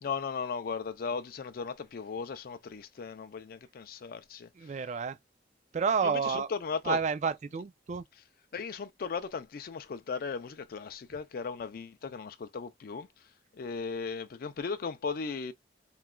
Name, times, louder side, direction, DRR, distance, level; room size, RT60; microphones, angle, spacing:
voice 1, 0.0-4.5 6.0-7.0 8.5-13.1 13.5-15.5, left 5 dB, 55° left, 0.4 m, -37 dB
voice 2, 4.6-5.2 5.7-6.5 6.8-8.0, right 5 dB, 40° right, 0.3 m, -30 dB
3.0 x 2.4 x 2.2 m
head